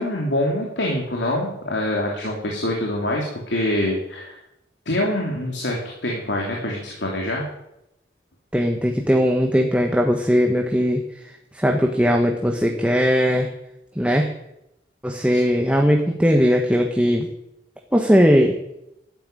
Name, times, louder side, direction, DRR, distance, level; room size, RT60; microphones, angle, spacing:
voice 1, 0.0-4.4 4.8-7.4 15.3-15.4, left 1 dB, 90° left, -1 dB, 3.1 m, -25 dB
voice 2, 8.5-11.0 11.5-13.5 14.0-14.3 15.0-17.3 17.9-18.5, equal, 5° right, 2 dB, 1.3 m, -19 dB
12.5 x 10.0 x 9.1 m, 0.85 s
head